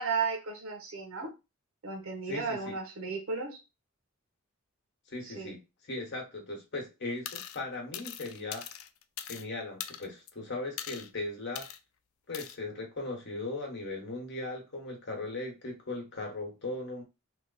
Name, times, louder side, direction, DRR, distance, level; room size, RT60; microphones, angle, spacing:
voice 1, 0.0-1.3 1.8-3.6 5.2-5.5, right 4 dB, 80° right, 1.0 m, -34 dB
voice 2, 2.3-2.8 5.1-5.6 5.9-8.7 9.3-11.7 12.3-17.0, left 2 dB, 55° left, 1.1 m, -38 dB
sound 1, 7.3-7.6 7.9-9.5 9.8-10.3 10.8-11.1 11.6-11.8 12.3-12.6, left 10 dB, 80° left, 0.4 m, -41 dB
3.0 x 2.1 x 3.8 m
head